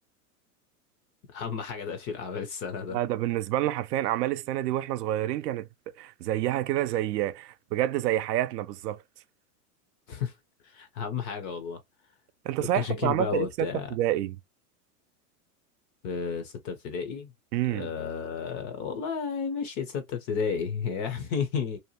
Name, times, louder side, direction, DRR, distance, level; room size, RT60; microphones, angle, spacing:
voice 1, 1.3-3.0 10.1-10.3 10.6-11.8 12.6-13.9 16.0-17.3 17.7-21.8, left 6 dB, 25° left, 0.4 m, -32 dB
voice 2, 2.9-5.7 6.0-9.0 12.4-14.4 17.5-17.9, right 13 dB, 85° right, 0.6 m, -28 dB
2.7 x 2.1 x 2.7 m
supercardioid pair, 130°, 47 cm